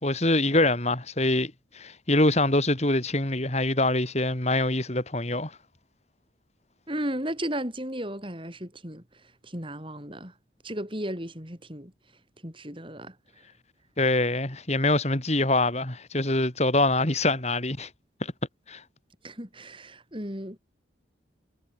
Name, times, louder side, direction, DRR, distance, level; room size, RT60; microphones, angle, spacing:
voice 1, 0.0-5.5 14.0-17.9 18.2-18.3 18.7-18.8, left 2 dB, 35° left, 3.3 m, -24 dB
voice 2, 6.9-10.3 10.6-11.9 12.4-13.5 19.2-20.6, right 1 dB, 25° right, 7.8 m, -35 dB
head